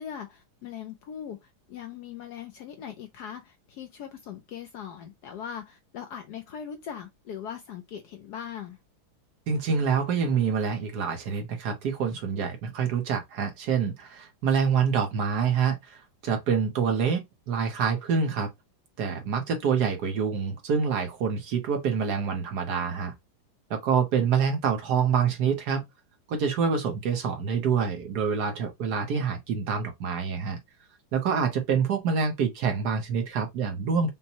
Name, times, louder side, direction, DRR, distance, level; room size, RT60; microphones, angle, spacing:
voice 1, 0.0-8.8, left 8 dB, 75° left, 1.0 m, -40 dB
voice 2, 9.5-17.2 17.5-18.5 19.0-23.1 23.7-25.8 26.3-30.6 31.1-34.1, right 6 dB, 60° right, 1.2 m, -26 dB
5.4 x 2.1 x 2.8 m
omnidirectional pair, 2.2 m